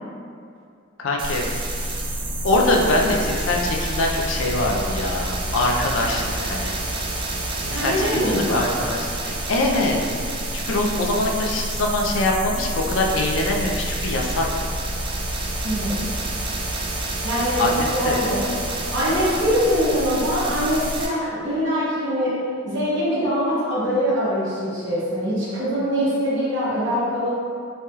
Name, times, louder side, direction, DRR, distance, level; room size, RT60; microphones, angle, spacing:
voice 1, 1.0-1.5 2.4-6.7 7.6-10.0 10.5-14.5 17.6-18.2, left 2 dB, 75° left, 0 dB, 0.4 m, -23 dB
sound 1, 1.2-21.1, right 1 dB, 25° right, 0.3 m, -28 dB
voice 2, 7.6-8.6 15.6-16.2 17.2-17.7 17.9-18.5 18.9-22.4 22.6-27.3, equal, 65° right, -9 dB, 1.0 m, -23 dB
3.2 x 2.8 x 2.3 m, 2.4 s
head